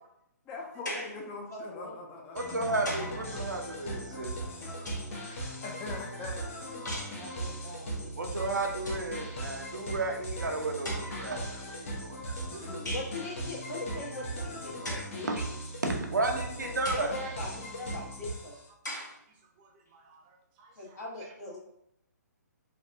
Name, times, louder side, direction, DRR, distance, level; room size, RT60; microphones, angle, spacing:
voice 1, 0.4-3.4 3.9-4.8 5.3-6.5 12.5-13.0, left 3 dB, 20° left, 1 dB, 0.5 m, -44 dB
sound 1, 0.9-1.3 2.4-3.2 4.4-5.3 6.9-7.2 8.4-8.5 8.7-9.1 10.1-10.2 10.8-11.4 12.9-13.2 14.8-15.2 15.9-16.0 16.8-17.2 17.9-18.0 18.8-19.2, left 1 dB, 85° left, 0.9 m, -39 dB
voice 2, 1.5-1.9 2.6-2.8 3.5-3.6 6.9-8.1 12.9-15.3 16.6-18.5 20.8-21.6, left 1 dB, 65° left, -5 dB, 1.4 m, -41 dB
voice 3, 2.3-4.3 8.2-12.6 15.2-15.4 15.8-17.2, right 2 dB, 85° right, 2 dB, 0.6 m, -33 dB
sound 2, 2.4-18.7, right 1 dB, 45° left, 0.9 m, -38 dB
voice 4, 6.9-7.4 11.9-12.6 15.0-15.1 18.1-18.2 18.7-21.0, right 5 dB, 30° right, 1 dB, 0.6 m, -61 dB
3.4 x 2.3 x 2.6 m, 0.77 s
figure-of-eight pair, 135°, 9 cm